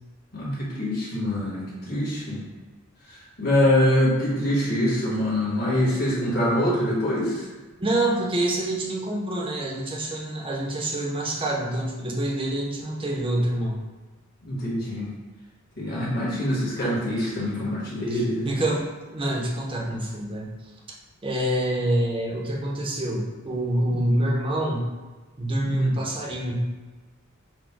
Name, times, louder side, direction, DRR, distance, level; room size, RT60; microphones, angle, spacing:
voice 1, 0.3-2.4 3.1-7.5 14.4-15.1 15.8-18.5 23.9-24.1 25.6-26.0, left 1 dB, 50° left, -5 dB, 1.4 m, -24 dB
voice 2, 7.8-13.8 18.1-20.5 21.2-24.9 25.4-26.6, right 1 dB, 25° right, -2 dB, 0.7 m, -26 dB
4.2 x 2.2 x 4.5 m, 1.3 s
head